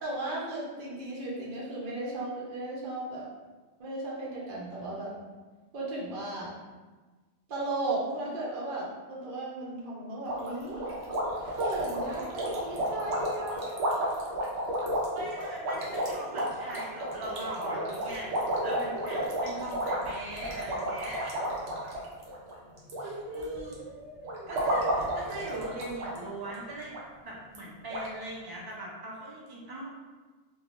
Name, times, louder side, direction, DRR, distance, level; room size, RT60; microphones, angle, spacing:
voice 1, 0.0-3.2 3.8-5.1 5.7-6.5 7.5-10.9 11.4-14.2 23.0-24.5, right 2 dB, 50° right, -6 dB, 0.9 m, -36 dB
sound 1, 10.3-23.0 23.3-23.7 24.2-26.2 26.4-26.6 26.9-27.0 27.6-27.7 27.9-28.1, right 1 dB, 85° right, 1.0 m, -32 dB
voice 2, 12.1-12.4 13.5-13.6 15.1-21.4 23.0-23.8 24.5-26.9 27.2-29.9, right 1 dB, 35° right, -4 dB, 0.4 m, -40 dB
3.1 x 2.3 x 2.5 m, 1.3 s
omnidirectional pair, 1.2 m